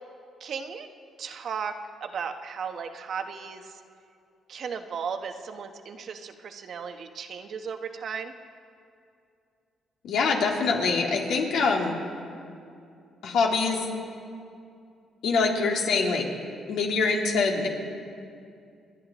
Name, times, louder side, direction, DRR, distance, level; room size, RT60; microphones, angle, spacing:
voice 1, 0.4-0.9 1.2-3.8 4.5-8.3, right 6 dB, 60° right, 7 dB, 1.0 m, -35 dB
voice 2, 10.0-11.9 13.2-13.8 15.2-16.3 16.7-17.7, left 4 dB, 80° left, 0 dB, 2.3 m, -24 dB
29.5 x 10.0 x 4.0 m, 2.5 s
cardioid pair, 90°, 0 cm